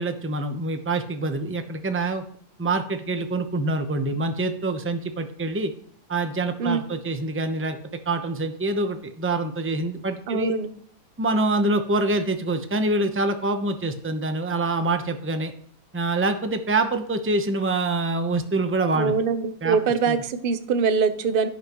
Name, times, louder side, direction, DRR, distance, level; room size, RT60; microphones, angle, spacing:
voice 1, 0.0-2.2 2.6-5.7 6.1-7.8 8.1-10.5 11.2-15.5 15.9-19.1 19.6-19.8 20.1-20.2, right 2 dB, 15° right, 7 dB, 0.4 m, -25 dB
voice 2, 6.6-7.0 10.3-10.7 18.9-21.5, right 5 dB, 45° right, 10 dB, 0.7 m, -23 dB
17.0 x 5.8 x 3.0 m, 0.64 s
omnidirectional pair, 1.9 m